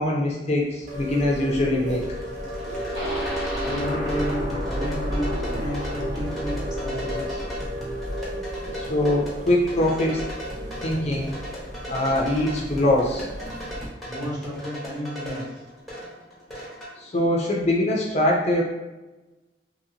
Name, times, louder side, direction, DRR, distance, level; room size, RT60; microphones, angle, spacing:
voice 1, 0.0-2.0 8.7-10.2 10.8-11.3 11.9-13.3 17.0-18.6, left 1 dB, 40° left, -1 dB, 0.4 m, -23 dB
sound 1, 0.9-13.9, equal, 45° right, 0.5 m, -34 dB
sound 2, 2.0-16.9, equal, ahead, 0.8 m, -38 dB
sound 3, 3.0-10.8 11.2-11.3 11.6-11.7, equal, 90° right, 1.0 m, -32 dB
voice 2, 3.6-7.4 14.1-15.7, equal, 25° right, -7 dB, 1.1 m, -32 dB
2.8 x 2.6 x 2.7 m, 1.1 s
head